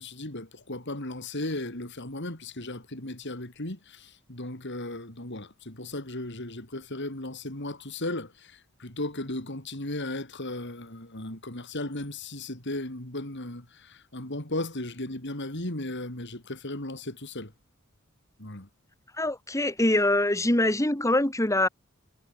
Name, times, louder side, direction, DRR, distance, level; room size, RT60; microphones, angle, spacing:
voice 1, 0.0-17.5 18.4-18.7, left 1 dB, 60° left, 4.9 m, -36 dB
voice 2, 19.2-21.7, left 1 dB, 15° left, 2.5 m, -24 dB
head